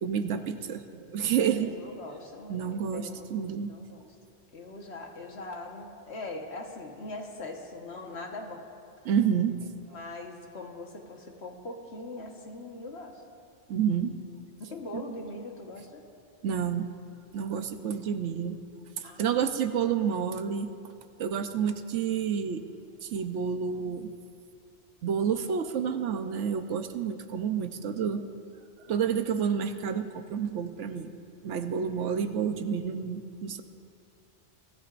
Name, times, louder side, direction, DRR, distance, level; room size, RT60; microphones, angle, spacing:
voice 1, 0.0-1.7 2.5-3.7 9.0-9.6 13.7-14.1 14.9-15.0 16.4-16.9 17.3-18.6 19.0-20.7 21.2-22.6 23.0-24.1 25.0-28.3 28.9-31.1 31.4-33.6, right 7 dB, 80° right, 8 dB, 1.1 m, -29 dB
voice 2, 1.7-3.2 3.7-4.2 4.5-8.6 9.9-13.2 14.7-16.1 17.8-17.9 19.0-19.7 31.5-31.9, left 2 dB, 65° left, 2 dB, 1.6 m, -41 dB
24.0 x 14.5 x 2.5 m, 2.7 s
omnidirectional pair, 1.2 m